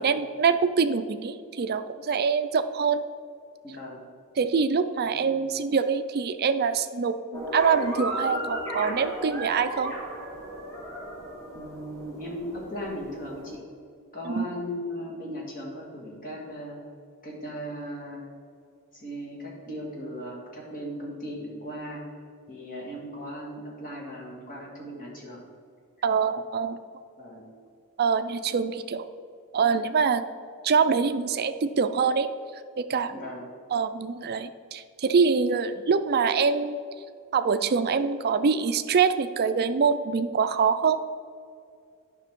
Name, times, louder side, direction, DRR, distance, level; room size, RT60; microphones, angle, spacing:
voice 1, 0.0-3.0 4.4-9.9 14.3-14.5 26.0-26.8 28.0-29.1 29.5-30.2 30.6-32.3 32.8-33.1 33.7-36.8 37.3-41.0, right 5 dB, 45° right, 10 dB, 0.4 m, -24 dB
voice 2, 3.6-4.0 5.0-5.3 11.5-13.6 14.1-16.8 17.2-18.2 18.9-22.0 22.5-25.4 26.0-26.1 27.2-27.5 33.1-33.4, equal, 40° left, -3 dB, 2.0 m, -37 dB
sound 1, 7.3-13.6, equal, 15° left, 1.9 m, -35 dB
10.0 x 5.9 x 3.7 m, 2.3 s
head